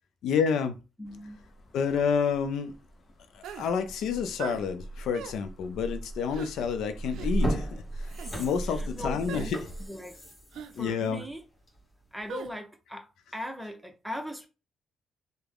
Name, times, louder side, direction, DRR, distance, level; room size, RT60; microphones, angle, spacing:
voice 1, 0.2-0.8 1.7-2.7 3.3-8.1 8.4-9.6 10.8-11.2, left 6 dB, 80° left, 0.4 m, -29 dB
voice 2, 1.0-1.4 8.6-9.6 9.9-10.1 10.7-11.4 12.1-14.5, left 1 dB, 5° right, 0.8 m, -39 dB
sound 1, 1.1-9.9, right 1 dB, 45° left, 0.8 m, -38 dB
sound 2, 3.4-3.7 4.4-4.6 5.1-5.4 6.3-6.5 7.1-7.3 8.1-8.3 9.3-9.5 10.5-10.7 12.3-12.5, right 8 dB, 80° right, 0.4 m, -40 dB
sound 3, 6.6-6.8 7.2-11.9 12.3-12.4, right 1 dB, 25° left, 1.7 m, -38 dB
3.4 x 2.1 x 3.4 m
cardioid pair, 90°, 0 cm